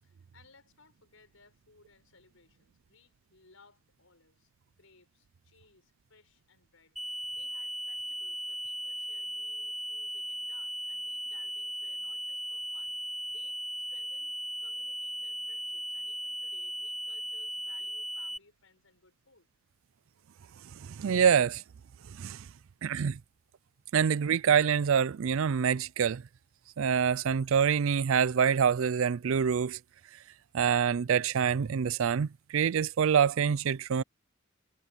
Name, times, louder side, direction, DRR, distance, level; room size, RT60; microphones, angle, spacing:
voice 1, 0.0-13.6 13.9-19.5, left 4 dB, 70° left, 5.5 m, -63 dB
sound 1, 7.0-18.4, equal, ahead, 0.5 m, -37 dB
voice 2, 20.8-21.6 22.1-22.4 22.8-23.2 23.9-26.2 26.8-29.8 30.5-34.0, right 7 dB, 65° right, 0.4 m, -26 dB
head